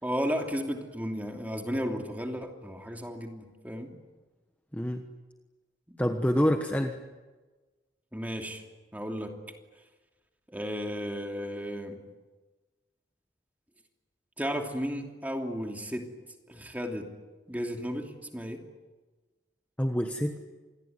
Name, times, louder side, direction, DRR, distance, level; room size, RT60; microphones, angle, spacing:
voice 1, 0.0-3.9 8.1-8.6 8.9-9.3 10.5-12.0 14.4-16.1 16.5-17.1 17.5-18.6, equal, 10° right, 2 dB, 3.0 m, -34 dB
voice 2, 4.7-5.1 6.0-7.0 19.8-20.4, equal, 10° left, 5 dB, 1.2 m, -27 dB
27.5 x 21.0 x 9.6 m, 1.3 s
head